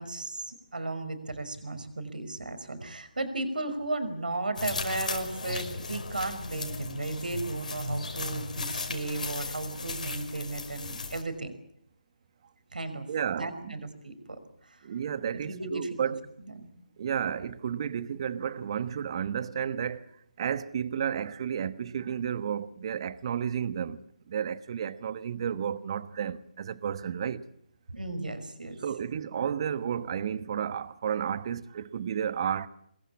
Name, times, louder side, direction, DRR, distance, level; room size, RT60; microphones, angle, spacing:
voice 1, 0.0-11.5 12.7-13.1 13.4-14.8 15.5-16.0 16.4-16.7 27.9-28.8, right 2 dB, 75° right, 5.5 m, -35 dB
sound 1, 4.6-11.2, left 4 dB, 60° left, 5.1 m, -36 dB
voice 2, 13.1-13.8 14.8-16.2 17.0-20.1 20.4-27.4 28.8-32.7, right 8 dB, 35° right, 1.2 m, -32 dB
25.0 x 21.5 x 8.6 m
figure-of-eight pair, 155°, 5 cm